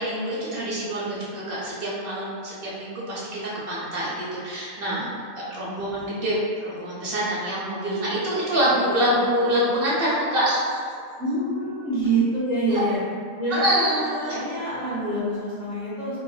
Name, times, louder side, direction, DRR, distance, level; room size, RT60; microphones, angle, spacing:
voice 1, 0.0-5.1 5.4-6.3 6.6-10.9 12.7-12.8 13.6-14.4, equal, 55° right, -7 dB, 0.6 m, -25 dB
voice 2, 4.8-5.1 5.4-5.7 11.2-13.0 13.4-13.8 14.3-16.2, right 2 dB, 45° left, -11 dB, 1.4 m, -26 dB
3.9 x 2.1 x 2.2 m, 2.2 s
omnidirectional pair, 1.5 m